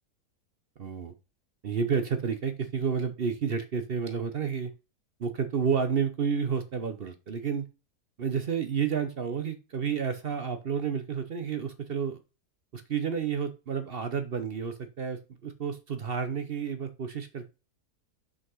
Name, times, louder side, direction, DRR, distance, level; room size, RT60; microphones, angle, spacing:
voice 1, 0.8-1.1 1.6-4.7 5.2-7.7 8.2-12.2 12.7-17.5, right 6 dB, 50° right, 10 dB, 0.7 m, -30 dB
6.2 x 5.4 x 5.5 m, 0.31 s
omnidirectional pair, 1.7 m